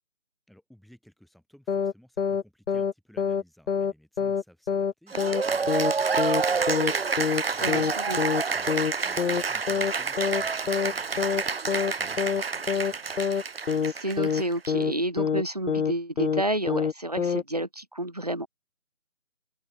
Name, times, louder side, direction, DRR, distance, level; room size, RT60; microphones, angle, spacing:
voice 1, 0.5-13.1, equal, ahead, 3.2 m, -56 dB
sound 1, 1.7-2.4 2.7-2.9 3.2-3.4 3.7-3.9 4.2-4.4 4.7-4.9 5.2-5.4 5.7-5.9 6.2-6.4 6.7-6.9 7.2-7.4 7.7-8.4 8.7-8.9 9.2-9.4 9.7-9.9 10.2-10.4 10.7-10.9 11.2-11.4 11.7-11.9 12.2-12.4 12.7-12.9 13.2-13.4 13.7-13.9 14.2-14.4 14.7-14.9 15.2-15.4 15.7-15.9 16.2-16.4 16.7-16.9 17.2-17.4, left 6 dB, 60° left, 0.7 m, -26 dB
Cheering / Applause, 5.1-14.7, right 5 dB, 45° right, 1.2 m, -28 dB
voice 2, 7.6-8.2 13.9-18.5, right 1 dB, 30° right, 0.6 m, -30 dB
open air
figure-of-eight pair, 165°, 41 cm